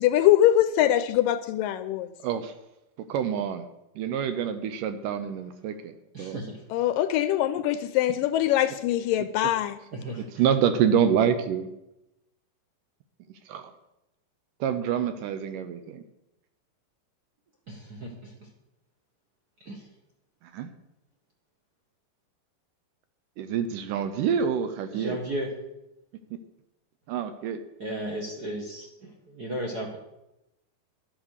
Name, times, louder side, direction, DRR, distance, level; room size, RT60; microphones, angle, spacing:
voice 1, 0.0-2.1 6.7-9.8, left 12 dB, 80° left, 12 dB, 2.1 m, -23 dB
voice 2, 2.2-2.5 3.1-3.7 4.0-6.4 10.2-11.7 13.5-13.7 14.6-16.0 20.5-20.7 23.4-25.2 27.1-27.6, right 8 dB, 75° right, 10 dB, 2.2 m, -27 dB
voice 3, 6.1-6.6 9.9-10.2 17.7-18.3 19.6-19.9 24.9-25.5 27.8-30.0, right 1 dB, 45° right, 0 dB, 1.3 m, -35 dB
12.5 x 9.0 x 6.5 m, 0.90 s
omnidirectional pair, 4.2 m